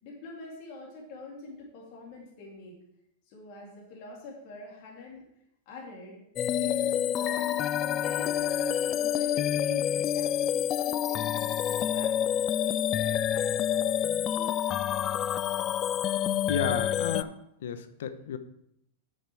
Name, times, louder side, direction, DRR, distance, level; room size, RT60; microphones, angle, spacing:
voice 1, 0.0-2.8 3.3-5.2 5.6-6.2 6.6-14.4, left 2 dB, 55° left, -2 dB, 3.1 m, -45 dB
sound 1, 6.4-17.2, left 10 dB, 35° left, 0.4 m, -28 dB
voice 2, 16.5-17.3 17.6-18.4, left 7 dB, 75° left, 10 dB, 0.9 m, -32 dB
8.6 x 6.5 x 4.8 m, 0.76 s
hypercardioid pair, 105°, 0 cm